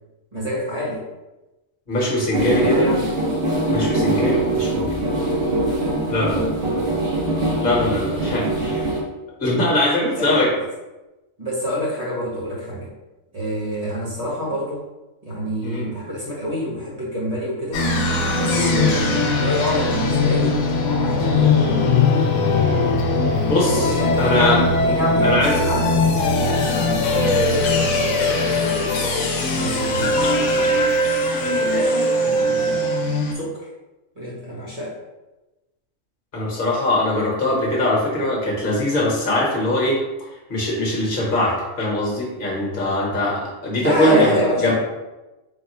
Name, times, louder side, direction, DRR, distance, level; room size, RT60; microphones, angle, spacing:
voice 1, 0.3-1.1 2.3-3.1 10.1-10.4 11.4-12.9 13.3-14.8 15.2-17.8 18.4-20.6 21.0-21.5 23.6-28.9 29.5-30.7 31.4-32.9 33.3-33.7 34.2-34.9 43.8-44.7, equal, 30° right, -5 dB, 1.2 m, -27 dB
voice 2, 1.9-2.9 3.7-4.9 6.1-6.5 7.6-8.9 9.4-10.5 15.6-15.9 18.5-18.7 23.4-24.6 25.2-25.5 36.3-40.0 40.5-44.7, left 1 dB, 40° left, -3 dB, 1.2 m, -21 dB
sound 1, 2.3-9.0, right 1 dB, 50° right, 1.1 m, -22 dB
sound 2, 17.7-33.3, left 2 dB, 85° left, 1.0 m, -20 dB
4.0 x 2.3 x 4.2 m, 1.1 s
omnidirectional pair, 1.4 m